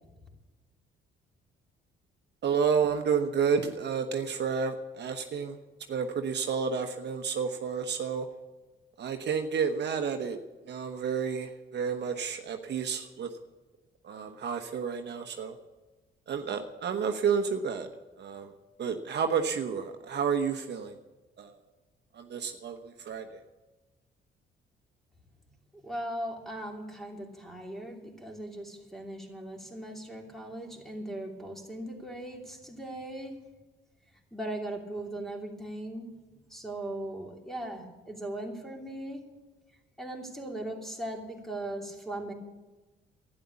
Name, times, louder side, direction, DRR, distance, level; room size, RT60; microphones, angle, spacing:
voice 1, 2.4-5.6 5.9-8.3 9.0-10.4 10.7-13.3 14.0-15.6 16.3-17.9 18.2-18.5 18.8-21.0 21.4-21.5 22.1-23.4, right 6 dB, 60° right, 5 dB, 1.1 m, -30 dB
voice 2, 25.8-33.4 34.3-36.1 36.5-39.2 40.0-42.3, right 1 dB, ahead, 1 dB, 2.9 m, -39 dB
12.0 x 10.0 x 8.4 m, 1.2 s
cardioid pair, 90°, 20 cm